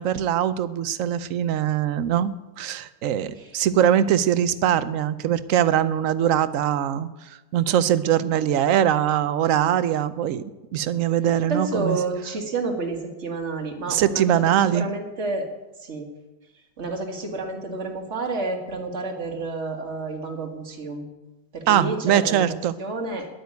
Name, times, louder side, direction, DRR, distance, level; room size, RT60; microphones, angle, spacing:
voice 1, 0.0-7.1 7.5-10.4 10.7-12.0 13.9-14.9 21.7-22.7, right 10 dB, 60° right, 14 dB, 0.9 m, -22 dB
voice 2, 11.5-14.2 14.6-15.5 15.8-16.1 16.8-21.1 21.5-22.4 22.8-23.3, right 3 dB, 40° right, 2 dB, 2.1 m, -30 dB
10.5 x 9.3 x 9.4 m, 1.1 s
omnidirectional pair, 1.9 m